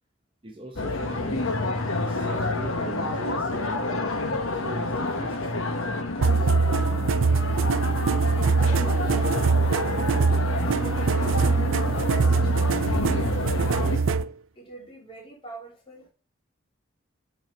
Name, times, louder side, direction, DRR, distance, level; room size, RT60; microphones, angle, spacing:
voice 1, 0.4-1.6 2.0-4.1 4.5-6.5, right 2 dB, 25° right, 1.0 m, -41 dB
sound 1, 0.8-14.0, left 2 dB, 85° left, 1.2 m, -29 dB
sound 2, 6.2-14.3, right 4 dB, 70° right, 0.4 m, -23 dB
voice 2, 8.5-9.6 10.5-12.6 12.9-13.1 13.7-16.1, equal, 25° left, 2.8 m, -44 dB
7.3 x 4.3 x 5.4 m
head